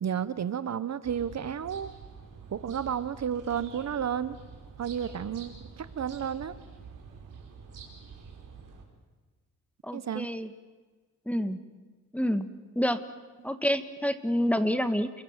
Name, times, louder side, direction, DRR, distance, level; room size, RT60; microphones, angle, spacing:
voice 1, 0.0-1.9 2.5-4.4 4.8-6.5 9.9-10.3, right 8 dB, 55° right, 15 dB, 1.0 m, -32 dB
sound 1, 1.0-8.8, right 5 dB, 80° right, 5.1 m, -47 dB
voice 2, 9.8-10.5 11.3-11.6 12.1-12.5 12.8-13.0 13.4-15.2, equal, 5° left, 10 dB, 1.6 m, -28 dB
29.5 x 22.0 x 7.4 m, 1.3 s
cardioid pair, 105°, 31 cm